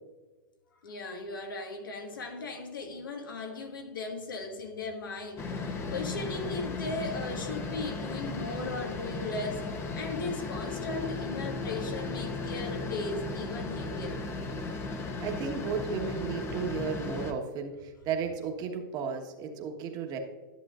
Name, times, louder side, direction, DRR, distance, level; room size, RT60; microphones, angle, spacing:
voice 1, 0.8-9.7 9.9-14.2, left 2 dB, 85° left, 3 dB, 1.7 m, -37 dB
sound 1, 5.4-17.3, left 3 dB, 25° left, 0.9 m, -36 dB
voice 2, 15.2-20.2, right 6 dB, 35° right, 3 dB, 1.3 m, -34 dB
11.5 x 7.4 x 2.5 m, 1.3 s
hypercardioid pair, 125°, 11 cm